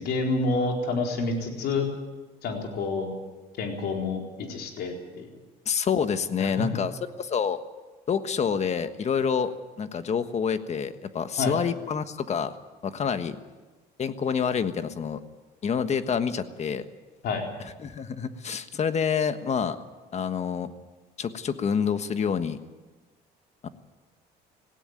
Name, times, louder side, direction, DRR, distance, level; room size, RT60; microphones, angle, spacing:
voice 1, 0.0-1.9 2.4-3.1 3.6-5.3 6.4-6.7 11.4-11.5 17.2-17.4, left 3 dB, 70° left, 2 dB, 4.3 m, -28 dB
voice 2, 5.6-6.9 7.2-7.6 8.1-12.5 12.8-13.4 14.0-15.2 15.6-16.9 17.6-19.8 20.1-20.7 21.2-22.6 23.6-23.7, left 7 dB, 40° left, 11 dB, 1.4 m, -27 dB
18.5 x 16.5 x 9.2 m, 1.2 s
cardioid pair, 110°, 17 cm